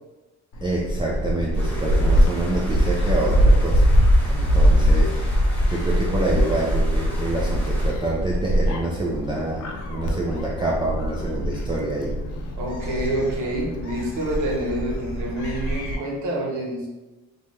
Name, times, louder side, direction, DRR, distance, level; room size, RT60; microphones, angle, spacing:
Gull seagull, 0.5-16.0, equal, 70° left, 0.6 m, -22 dB
voice 1, 0.6-3.8 4.2-12.1, right 2 dB, 15° right, -4 dB, 0.4 m, -27 dB
sound 1, 1.6-7.9, equal, 5° left, 0.9 m, -39 dB
voice 2, 12.6-16.9, right 1 dB, 80° right, -1 dB, 0.8 m, -27 dB
3.0 x 2.3 x 2.6 m, 1.1 s
cardioid pair, 90°, 30 cm